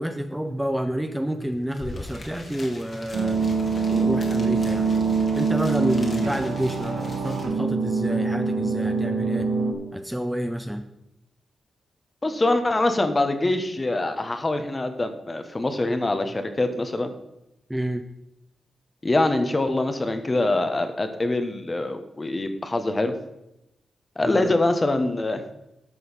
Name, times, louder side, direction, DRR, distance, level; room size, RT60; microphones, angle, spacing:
voice 1, 0.0-3.4 3.9-4.9 5.3-9.5 9.9-10.8 17.7-18.0 24.2-24.5, right 1 dB, 5° right, 7 dB, 0.8 m, -29 dB
sound 1, 1.4-1.5 1.7-7.4, left 2 dB, 50° left, 2.3 m, -42 dB
sound 2, 3.1-9.7, right 4 dB, 90° right, 1.8 m, -24 dB
voice 2, 12.2-17.1 19.0-23.1 24.2-25.4, left 2 dB, 30° left, 8 dB, 1.3 m, -24 dB
11.0 x 6.2 x 5.6 m, 0.88 s
cardioid pair, 65°, 0 cm